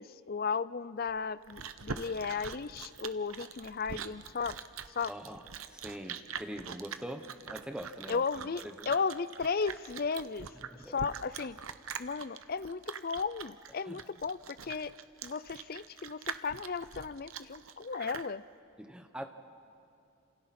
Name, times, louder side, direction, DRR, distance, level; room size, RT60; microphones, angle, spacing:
voice 1, 0.0-4.6 5.0-5.1 8.1-10.5 10.9-11.6 12.0-14.9 15.2-18.4, left 5 dB, 45° left, 16 dB, 0.5 m, -35 dB
Chewing mastication, 1.1-18.3, right 6 dB, 80° right, 0.8 m, -43 dB
voice 2, 5.1-5.4 5.7-8.9 10.7-10.9 13.9-14.0 18.8-19.2, equal, 5° right, 5 dB, 1.0 m, -43 dB
29.5 x 27.5 x 4.4 m, 2.6 s
head